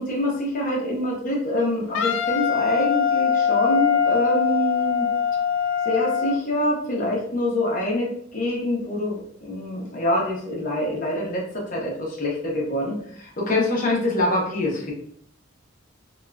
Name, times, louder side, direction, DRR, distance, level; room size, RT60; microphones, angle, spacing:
voice 1, 0.0-5.1 5.8-14.9, left 1 dB, 45° left, -3 dB, 0.9 m, -25 dB
Wind instrument woodwind instrument, 1.9-6.4, left 7 dB, 80° left, 0.3 m, -22 dB
3.6 x 2.4 x 2.2 m, 0.64 s
head